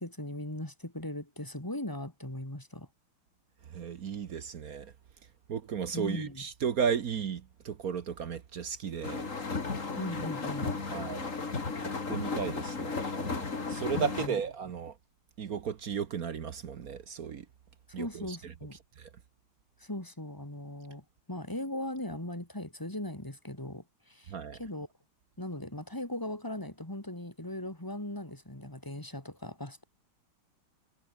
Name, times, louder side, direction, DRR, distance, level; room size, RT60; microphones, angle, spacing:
voice 1, 0.0-2.9 5.9-6.4 10.0-10.8 13.9-14.4 17.9-18.8 19.8-24.9 25.4-29.8, left 1 dB, 10° left, 3.6 m, -39 dB
voice 2, 3.6-4.9 5.5-9.3 10.9-11.3 11.8-15.0 15.4-17.5 17.9-18.5 19.0-19.1 24.3-24.6, right 7 dB, 50° right, 1.3 m, -35 dB
sound 1, 9.0-14.3, left 4 dB, 35° left, 2.9 m, -34 dB
omnidirectional pair, 2.3 m